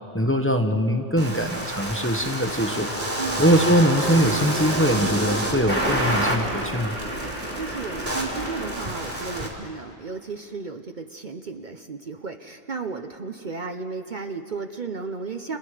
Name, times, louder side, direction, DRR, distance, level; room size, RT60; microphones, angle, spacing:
voice 1, 0.1-2.9 3.4-7.0, equal, 10° left, 5 dB, 1.1 m, -22 dB
sound 1, 1.2-9.5, right 1 dB, 60° right, 3.5 m, -28 dB
voice 2, 7.6-15.6, right 4 dB, 45° right, 6 dB, 0.9 m, -34 dB
30.0 x 27.0 x 5.0 m, 2.5 s
omnidirectional pair, 1.2 m